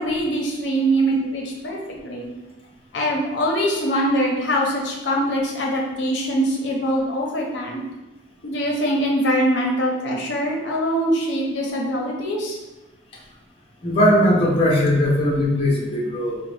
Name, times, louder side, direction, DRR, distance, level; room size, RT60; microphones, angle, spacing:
voice 1, 0.0-1.8 2.0-2.3 2.9-7.8 8.4-12.6, equal, 75° left, -1 dB, 0.5 m, -23 dB
voice 2, 13.8-16.4, equal, 30° left, -4 dB, 0.6 m, -19 dB
3.8 x 2.0 x 3.1 m, 1.1 s
head